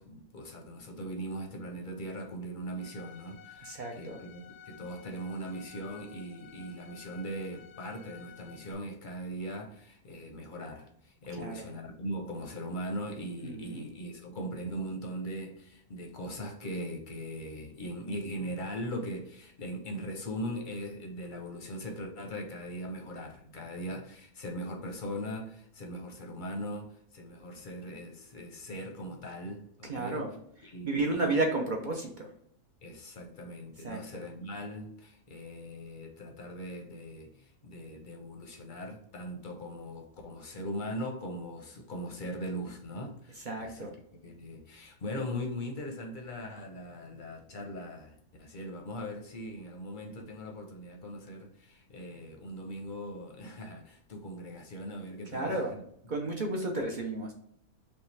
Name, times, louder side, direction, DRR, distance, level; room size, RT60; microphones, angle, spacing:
voice 1, 0.0-30.2 30.6-31.4 32.8-43.9 44.2-55.8, equal, 45° left, 0.7 m, -40 dB
Bowed string instrument, 2.8-8.7, left 8 dB, 90° left, 1.2 m, -53 dB
voice 2, 3.6-4.2 11.4-11.7 13.4-13.8 29.8-30.3 30.6-32.3 33.8-34.2 43.4-43.9 55.3-55.8 56.1-57.3, right 2 dB, 50° right, 0.6 m, -32 dB
5.5 x 2.4 x 3.2 m
omnidirectional pair, 1.6 m